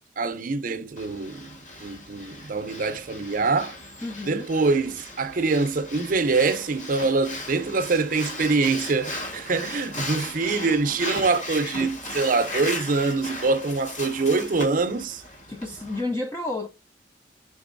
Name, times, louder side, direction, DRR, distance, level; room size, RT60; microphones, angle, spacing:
voice 1, 0.2-3.8 4.3-15.2, right 3 dB, 50° right, 0.6 m, -24 dB
Breathing, 1.0-16.0, left 1 dB, 45° left, 2.0 m, -37 dB
voice 2, 4.0-4.5 15.5-16.7, left 2 dB, 15° left, 0.4 m, -30 dB
5.2 x 3.9 x 2.5 m
head